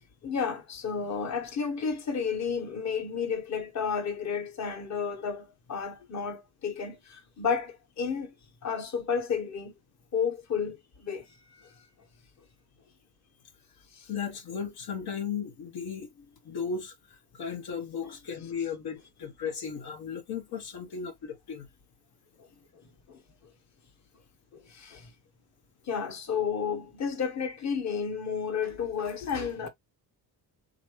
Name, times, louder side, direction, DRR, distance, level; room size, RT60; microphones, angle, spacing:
voice 1, 0.2-5.4 5.7-7.0 7.4-7.7 8.0-8.3 8.6-9.7 10.1-10.8 11.0-11.2 18.0-18.1 24.8-25.0 25.9-29.7, left 6 dB, 45° left, 1.4 m, -31 dB
voice 2, 14.1-16.9 17.3-21.7, left 6 dB, 75° left, 1.3 m, -36 dB
3.9 x 3.0 x 3.1 m
cardioid pair, 120°, 38 cm